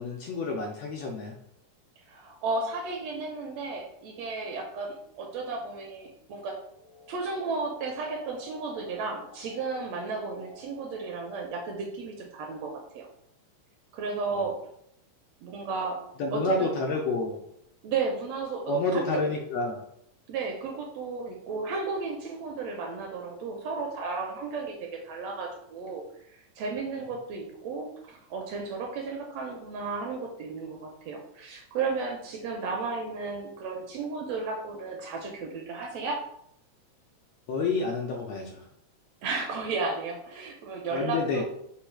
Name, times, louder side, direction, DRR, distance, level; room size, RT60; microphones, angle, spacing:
voice 1, 0.0-1.4 14.4-14.5 16.2-17.4 18.7-19.8 37.5-38.6 40.9-41.4, left 3 dB, 75° left, 0 dB, 1.6 m, -29 dB
voice 2, 2.1-6.6 7.1-13.1 13.9-14.6 15.4-16.0 16.3-16.7 17.8-19.3 20.3-36.2 39.2-41.4, right 4 dB, 75° right, 1 dB, 1.6 m, -34 dB
sound 1, 6.7-11.6, left 2 dB, 55° left, 0.9 m, -51 dB
4.6 x 2.3 x 4.4 m, 0.73 s
omnidirectional pair, 3.4 m